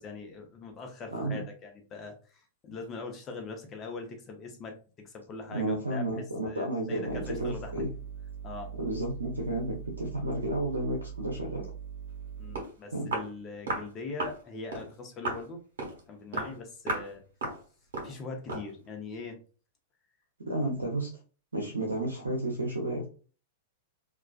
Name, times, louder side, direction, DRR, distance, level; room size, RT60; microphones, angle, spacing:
voice 1, 0.0-6.1 6.4-7.7 8.4-8.7 12.4-15.6 16.1-17.2 18.0-19.4, left 4 dB, 30° left, 4 dB, 0.7 m, -42 dB
voice 2, 1.1-1.4 5.5-7.9 8.8-11.7 12.9-13.1 20.4-21.1 21.5-23.0, right 1 dB, 90° right, 0 dB, 0.6 m, -32 dB
sound 1, 7.0-12.6, right 8 dB, 80° left, 0.9 m, -42 dB
Walk footsteps, 12.2-12.3 12.6-12.7 13.1-13.3 13.7-13.9 14.2-14.4 14.7-14.9 15.3-15.5 15.8-16.0 16.3-16.6 16.9-17.1 17.4-17.6 17.9-18.2 18.5-18.7, right 2 dB, 70° right, 1.1 m, -34 dB
2.3 x 2.3 x 2.3 m, 0.36 s
hypercardioid pair, 105°, 0 cm